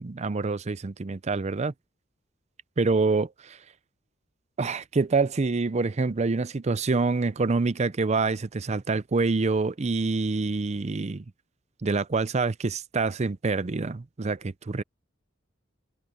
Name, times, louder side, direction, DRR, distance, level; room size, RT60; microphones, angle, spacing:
voice 1, 0.0-1.7 2.8-3.6 4.6-11.2 11.8-14.8, right 3 dB, 35° right, 0.5 m, -26 dB
head